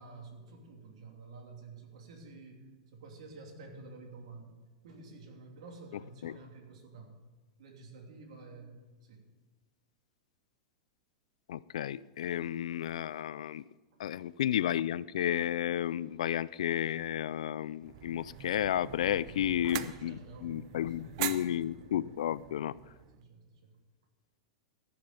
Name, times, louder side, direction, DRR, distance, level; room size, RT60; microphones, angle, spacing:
voice 1, 0.0-4.6 4.8-7.2 7.6-9.3 19.3-19.6 19.8-21.7 23.1-23.8, right 3 dB, 75° right, 2.9 m, -50 dB
voice 2, 11.5-13.6 14.0-22.7, left 11 dB, 80° left, 0.4 m, -32 dB
sound 1, 17.8-23.2, right 12 dB, 60° right, 0.8 m, -43 dB
15.0 x 6.8 x 6.9 m
hypercardioid pair, 120°, 3 cm